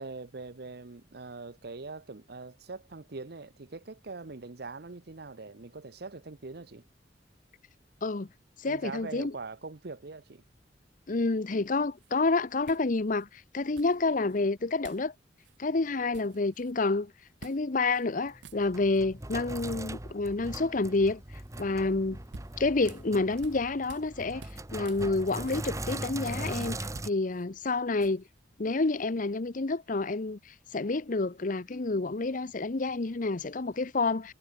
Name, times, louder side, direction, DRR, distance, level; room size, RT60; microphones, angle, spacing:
voice 1, 0.0-6.8 8.7-10.4, right 3 dB, 60° right, 0.9 m, -42 dB
voice 2, 8.6-9.3 11.1-15.1 15.6-17.1 17.4-21.2 21.6-22.2 22.6-24.4 24.7-26.8 27.0-28.2 28.6-34.3, left 3 dB, 50° left, 0.8 m, -29 dB
sound 1, 12.0-12.1 12.6-13.3 13.8-14.4 14.8-15.1 15.4-15.6 15.9-16.8 17.4-17.6 17.9-18.0 18.3-19.0 21.9-24.1 24.4-26.4 26.8-28.4, right 3 dB, 85° right, 1.2 m, -51 dB
Sink (filling or washing), 18.3-27.1, right 1 dB, 20° right, 1.3 m, -40 dB
head